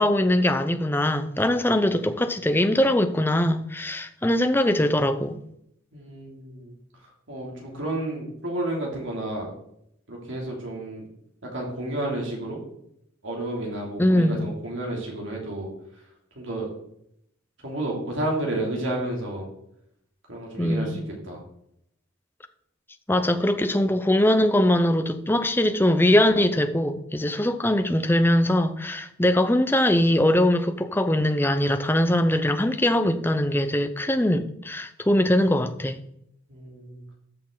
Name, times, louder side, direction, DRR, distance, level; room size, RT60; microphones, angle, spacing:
voice 1, 0.0-5.4 14.0-14.5 20.6-21.0 23.1-36.0, left 1 dB, 10° left, 0.6 m, -22 dB
voice 2, 5.9-6.7 7.3-9.5 10.1-11.0 11.5-12.6 13.2-15.7 16.3-16.7 17.6-19.5 20.3-21.4 36.5-37.0, right 1 dB, 65° right, 2.9 m, -31 dB
13.0 x 6.5 x 3.9 m
head